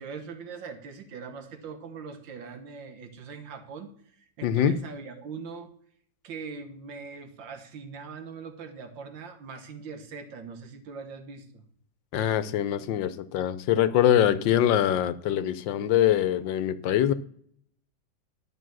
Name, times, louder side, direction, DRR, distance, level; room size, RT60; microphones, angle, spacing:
voice 1, 0.0-5.7 6.2-11.7, right 5 dB, 85° right, 1.9 m, -41 dB
voice 2, 4.4-4.8 12.1-17.1, left 10 dB, 85° left, 1.4 m, -23 dB
11.5 x 5.9 x 6.2 m
omnidirectional pair, 2.0 m